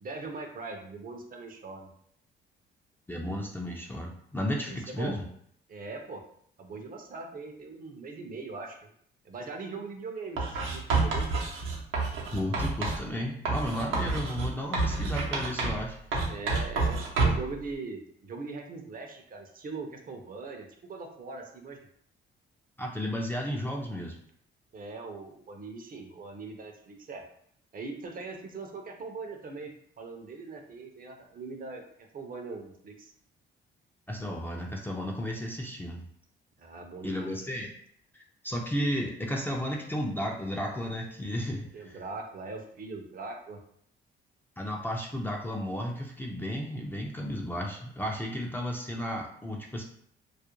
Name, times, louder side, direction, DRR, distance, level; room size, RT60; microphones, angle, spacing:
voice 1, 0.0-1.9 4.7-5.2 5.7-6.2 6.6-8.9 9.2-11.3 13.9-14.1 16.2-21.8 24.7-27.2 27.7-31.8 32.1-33.1 36.6-37.5 41.7-43.6, right 3 dB, 45° right, 3 dB, 0.5 m, -41 dB
voice 2, 3.1-5.2 12.3-16.3 22.8-24.2 34.1-36.0 37.0-37.7 38.1-42.0 44.6-49.8, equal, 10° left, 0 dB, 0.4 m, -33 dB
Writing, 10.4-13.0 13.4-15.9 16.1-17.5, right 3 dB, 85° right, 0.7 m, -29 dB
2.3 x 2.1 x 2.9 m, 0.67 s
cardioid pair, 90°, 20 cm